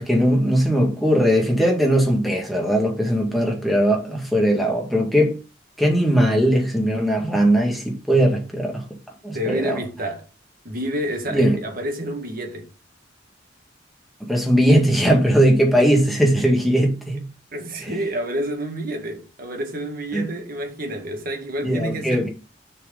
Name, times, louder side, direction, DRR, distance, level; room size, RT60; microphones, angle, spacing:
voice 1, 0.0-5.3 5.8-8.8 9.2-9.8 11.3-11.6 14.3-17.3 17.8-18.0 20.1-20.2 21.6-22.3, equal, ahead, 2.0 m, -19 dB
voice 2, 9.3-10.3 10.6-12.7 17.5-22.3, right 1 dB, 50° right, 1.9 m, -29 dB
6.9 x 4.7 x 5.4 m
head